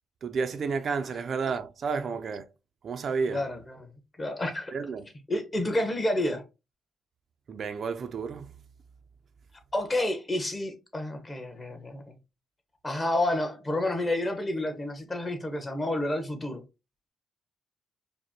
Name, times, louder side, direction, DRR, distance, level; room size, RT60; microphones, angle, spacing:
voice 1, 0.2-2.5 2.8-3.5 4.7-5.1 7.5-8.5, right 5 dB, 55° right, 0.4 m, -31 dB
voice 2, 3.3-3.9 4.2-4.8 5.3-6.4 9.7-12.2 12.8-16.6, left 1 dB, 25° left, 1.1 m, -30 dB
5.0 x 2.1 x 2.9 m
cardioid pair, 90°, 0 cm